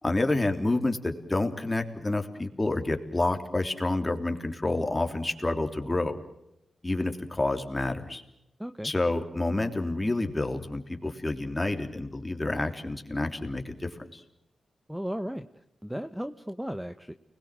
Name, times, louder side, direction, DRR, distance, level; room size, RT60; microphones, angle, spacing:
voice 1, 0.0-6.2 6.8-8.2 8.8-14.2, left 2 dB, 20° left, 5 dB, 3.3 m, -29 dB
voice 2, 8.6-8.9 14.9-17.1, equal, 5° right, 9 dB, 1.0 m, -35 dB
29.5 x 21.5 x 7.6 m, 0.85 s
wide cardioid pair, 95°, 0 cm